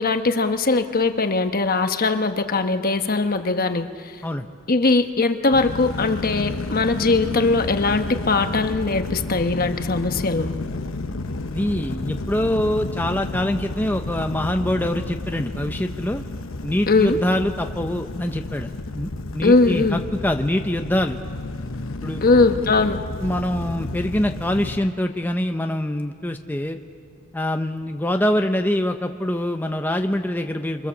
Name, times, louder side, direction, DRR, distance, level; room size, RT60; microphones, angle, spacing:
voice 1, 0.0-3.9 4.7-10.5 16.9-17.2 19.4-20.0 22.2-23.0, left 3 dB, 45° left, 7 dB, 1.1 m, -20 dB
sound 1, 5.5-24.8, left 2 dB, 90° left, 1.0 m, -31 dB
voice 2, 11.5-16.2 16.6-21.2 22.0-22.3 23.2-26.8 27.3-30.9, left 1 dB, 10° left, 5 dB, 0.7 m, -24 dB
25.5 x 25.5 x 7.2 m, 2.3 s
head